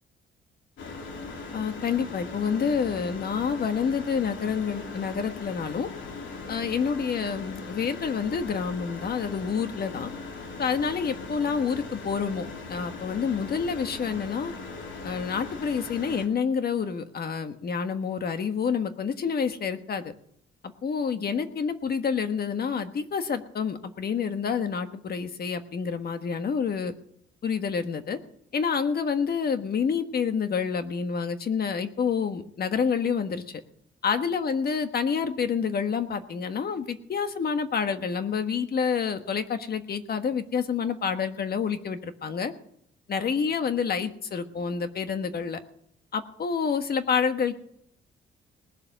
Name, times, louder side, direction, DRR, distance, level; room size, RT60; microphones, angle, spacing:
sound 1, 0.8-16.3, left 3 dB, 75° left, 3.0 m, -39 dB
voice 1, 1.5-5.9 6.5-10.1 10.6-14.5 15.0-20.1 20.8-26.9 27.4-28.2 28.5-33.6 34.0-42.5 43.1-45.6 46.1-47.5, left 6 dB, 50° left, 9 dB, 1.4 m, -28 dB
19.5 x 7.4 x 6.7 m, 0.70 s
cardioid pair, 90°, 20 cm